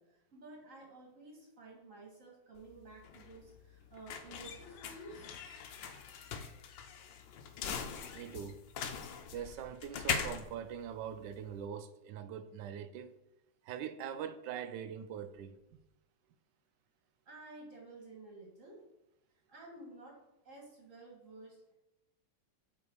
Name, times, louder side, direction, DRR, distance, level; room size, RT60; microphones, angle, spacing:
voice 1, 0.0-5.3 17.3-18.8 19.5-20.2 20.4-21.7, right 2 dB, 45° right, 2.0 m, -52 dB
sound 1, 2.6-11.6, left 7 dB, 85° left, 1.4 m, -41 dB
voice 2, 8.1-8.6 9.3-13.1 13.6-15.6, right 8 dB, 75° right, 1.1 m, -42 dB
8.1 x 3.8 x 4.6 m
omnidirectional pair, 2.0 m